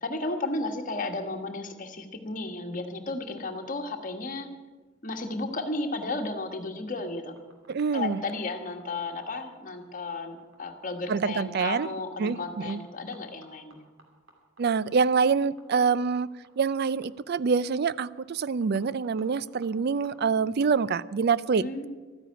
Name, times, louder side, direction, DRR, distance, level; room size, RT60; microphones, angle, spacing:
voice 1, 0.0-4.5 5.0-7.4 7.9-13.8 21.6-21.9, left 2 dB, 40° left, 4 dB, 1.5 m, -33 dB
sound 1, 7.4-21.0, right 2 dB, 80° right, 3.0 m, -55 dB
voice 2, 7.7-8.2 11.1-11.9 12.2-12.8 14.6-16.3 16.6-21.7, right 5 dB, 50° right, 19 dB, 0.4 m, -26 dB
13.5 x 9.9 x 8.8 m, 1.3 s
head